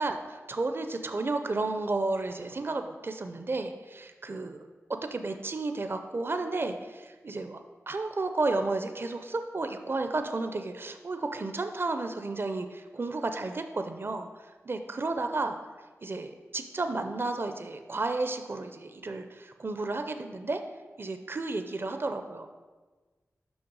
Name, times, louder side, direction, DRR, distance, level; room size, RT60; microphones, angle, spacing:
voice 1, 0.0-4.7 5.1-7.6 7.9-14.3 14.7-15.6 16.0-20.6 21.0-22.5, right 3 dB, 45° right, 7 dB, 0.5 m, -32 dB
6.3 x 5.6 x 4.7 m, 1.3 s
cardioid pair, 55°, 5 cm